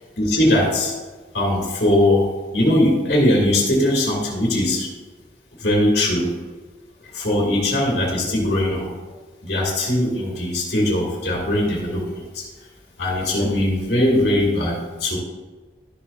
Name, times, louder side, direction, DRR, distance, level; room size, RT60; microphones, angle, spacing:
voice 1, 0.2-0.9 1.3-4.9 5.6-6.3 7.1-8.9 9.4-12.4 13.0-15.2, left 1 dB, 75° left, -4 dB, 2.3 m, -20 dB
13.0 x 7.0 x 2.6 m, 1.3 s
head